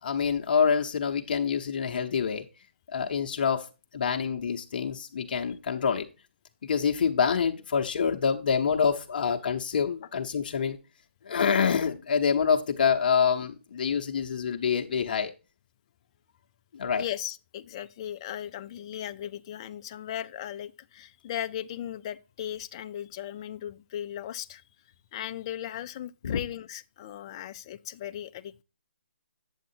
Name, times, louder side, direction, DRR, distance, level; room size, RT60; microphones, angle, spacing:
voice 1, 0.0-2.4 2.9-3.7 3.9-6.1 6.6-10.8 11.2-15.3 16.7-17.0 26.2-26.4, left 6 dB, 45° left, 0.8 m, -26 dB
voice 2, 17.0-24.6 25.1-28.6, left 11 dB, 25° left, 0.4 m, -37 dB
8.6 x 7.3 x 2.7 m
hypercardioid pair, 160°, 7 cm